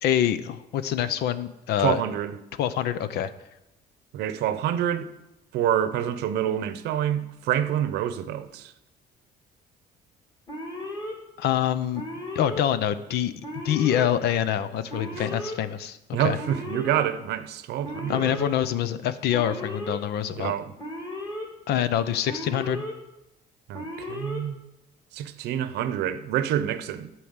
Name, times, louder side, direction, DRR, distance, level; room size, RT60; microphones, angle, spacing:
voice 1, 0.0-2.0 2.6-3.3 11.4-12.0 12.3-13.3 13.6-16.4 18.1-20.5 21.7-22.9, left 10 dB, 75° left, 0.7 m, -25 dB
voice 2, 1.8-2.4 4.1-5.1 5.5-8.7 15.2-15.3 16.1-18.5 20.3-20.7 23.7-24.6 25.1-27.1, right 10 dB, 80° right, 0.7 m, -27 dB
Alarm, 10.5-11.1 11.9-12.6 13.4-14.1 14.9-15.6 16.4-17.0 17.8-18.5 19.3-20.0 20.8-21.5 22.3-22.9 23.7-24.4, left 1 dB, 25° left, 2.9 m, -35 dB
11.0 x 4.6 x 8.1 m
cardioid pair, 110°, 17 cm